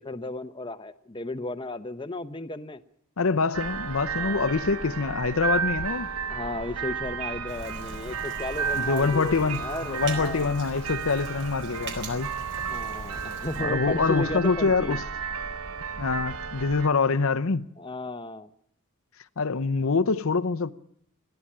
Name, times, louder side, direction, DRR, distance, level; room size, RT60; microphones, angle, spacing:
voice 1, 0.0-2.8 4.2-4.5 6.3-10.5 12.7-15.0 17.8-18.5, left 2 dB, 20° left, 0.8 m, -34 dB
voice 2, 3.2-6.1 8.8-12.3 13.6-15.0 16.0-17.7 19.4-20.7, left 4 dB, 70° left, 0.7 m, -25 dB
sound 1, 3.5-16.9, right 6 dB, 85° right, 1.2 m, -33 dB
Rain, 7.5-13.6, right 3 dB, 55° right, 4.1 m, -42 dB
21.5 x 14.5 x 8.7 m
head